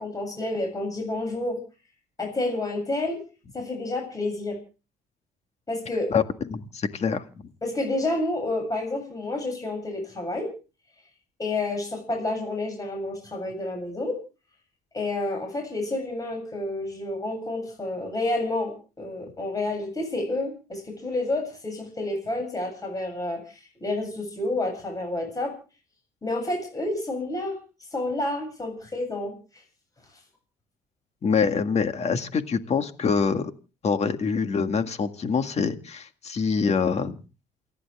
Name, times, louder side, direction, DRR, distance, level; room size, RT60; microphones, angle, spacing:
voice 1, 0.0-1.6 2.2-3.2 3.5-4.6 5.7-6.1 7.6-10.5 11.4-14.2 14.9-25.5 26.2-27.6 27.9-29.3, left 2 dB, 20° left, 2 dB, 7.9 m, -29 dB
voice 2, 6.5-7.2 31.2-33.5 33.8-37.1, left 5 dB, 40° left, 8 dB, 1.8 m, -25 dB
28.5 x 11.0 x 3.5 m, 0.35 s
cardioid pair, 110°, 17 cm